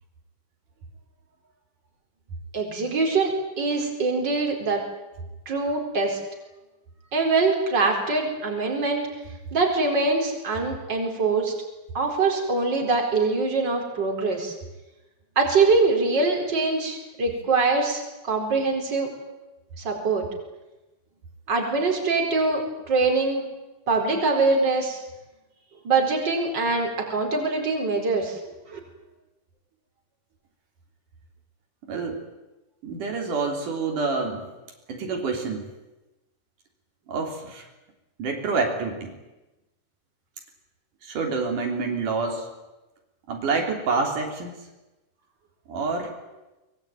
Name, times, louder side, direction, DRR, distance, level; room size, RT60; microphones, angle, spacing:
voice 1, 2.5-4.8 5.5-6.2 7.1-9.0 9.5-11.5 11.9-14.5 15.4-19.1 19.8-20.2 21.5-23.4 23.9-25.0 25.8-28.4 28.7-28.8, right 3 dB, 35° right, 2 dB, 5.0 m, -23 dB
voice 2, 31.9-32.2 32.8-34.5 34.9-35.6 37.1-37.6 38.2-39.2 41.0-42.5 43.3-44.5 45.7-46.1, right 4 dB, 80° right, 2 dB, 4.9 m, -27 dB
24.0 x 22.5 x 9.2 m, 1.0 s
omnidirectional pair, 3.6 m